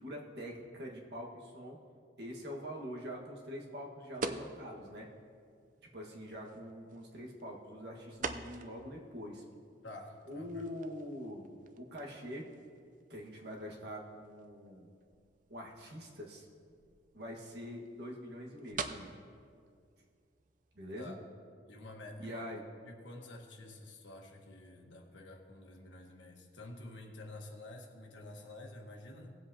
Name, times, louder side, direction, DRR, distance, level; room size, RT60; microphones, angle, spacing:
voice 1, 0.0-1.8 2.2-5.1 5.9-9.4 10.2-11.5 11.8-12.5 13.1-14.9 15.5-16.5 17.1-19.2 20.7-21.1 22.2-22.6, equal, 60° right, -1 dB, 1.6 m, -44 dB
sound 1, 4.1-21.1, right 4 dB, 45° right, 0.5 m, -48 dB
voice 2, 9.8-10.7 21.0-21.2 21.7-22.5 22.8-29.3, left 2 dB, 85° left, 1 dB, 1.4 m, -49 dB
19.0 x 7.7 x 2.8 m, 2.2 s
head